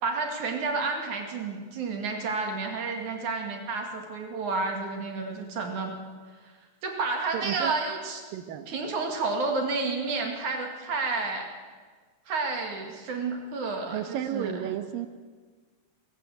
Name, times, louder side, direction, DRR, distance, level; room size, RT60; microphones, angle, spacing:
voice 1, 0.0-6.0 6.4-6.5 6.8-8.2 8.7-11.5 12.3-14.7, right 3 dB, 55° right, 3 dB, 3.5 m, -30 dB
voice 2, 7.3-7.8 8.3-8.7 13.8-15.1, right 10 dB, 70° right, 10 dB, 2.6 m, -32 dB
23.0 x 15.5 x 8.0 m, 1.5 s
omnidirectional pair, 4.5 m